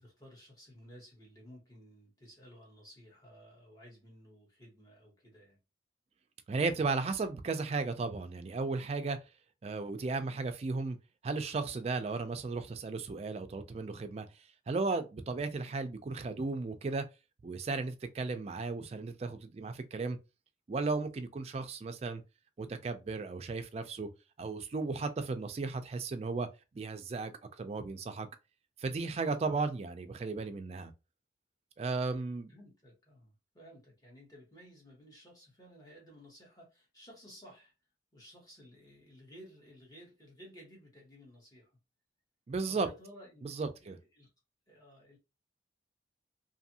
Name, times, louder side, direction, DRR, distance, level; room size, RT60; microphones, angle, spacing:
voice 1, 0.0-5.6 32.5-37.7 38.1-41.7 42.6-44.3 44.7-45.2, equal, 20° left, 1.1 m, -55 dB
voice 2, 6.5-9.2 9.6-11.0 11.2-14.3 14.7-17.0 17.4-20.2 20.7-22.2 22.6-24.1 24.4-26.5 26.8-27.3 27.6-28.3 28.8-30.9 31.8-32.5 42.5-42.9 43.4-44.0, right 3 dB, 35° right, 0.3 m, -35 dB
2.6 x 2.5 x 2.7 m
head